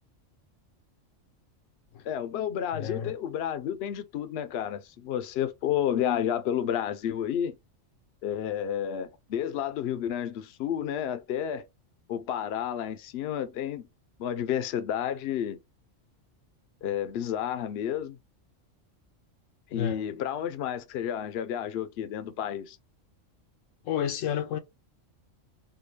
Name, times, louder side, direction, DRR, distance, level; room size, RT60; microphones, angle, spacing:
voice 1, 2.0-7.6 8.2-11.6 12.1-13.9 14.2-15.6 16.8-18.2 19.7-22.8, left 9 dB, 65° left, 0.8 m, -31 dB
voice 2, 2.7-3.1 19.7-20.1 23.9-24.6, left 8 dB, 80° left, 1.0 m, -30 dB
3.7 x 2.3 x 3.2 m
omnidirectional pair, 1.3 m